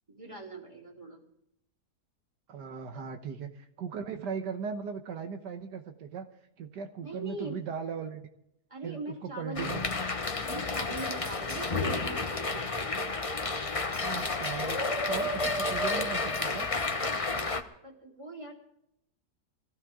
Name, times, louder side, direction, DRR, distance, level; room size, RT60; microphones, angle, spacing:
voice 1, 0.1-1.2 2.9-3.1 7.0-7.6 8.7-9.8 10.4-13.1 17.2-17.5 17.8-18.5, right 2 dB, 20° right, 1 dB, 3.1 m, -42 dB
voice 2, 2.5-6.3 6.6-8.3 8.8-9.9 14.0-14.8 15.1-16.7, right 6 dB, 80° right, 7 dB, 1.7 m, -38 dB
sound 1, 9.6-17.6, left 3 dB, 25° left, 0.8 m, -31 dB
21.5 x 15.5 x 3.7 m, 0.78 s
omnidirectional pair, 1.8 m